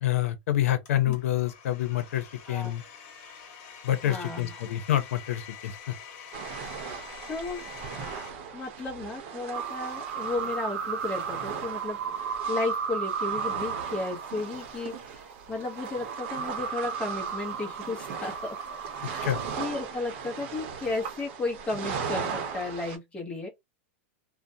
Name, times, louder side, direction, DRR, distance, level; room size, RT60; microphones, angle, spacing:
voice 1, 0.0-2.8 3.8-5.9 19.2-19.4, left 12 dB, 80° left, 0.7 m, -27 dB
Domestic sounds home sounds, 0.8-8.3, left 7 dB, 55° left, 1.1 m, -46 dB
voice 2, 4.0-4.6 7.3-7.6 8.5-18.5 19.0-23.5, left 3 dB, 15° left, 0.8 m, -34 dB
sound 1, 6.3-23.0, right 6 dB, 55° right, 0.8 m, -39 dB
sound 2, 9.5-19.7, right 6 dB, 90° right, 0.6 m, -35 dB
2.4 x 2.1 x 2.7 m
supercardioid pair, 145°, 7 cm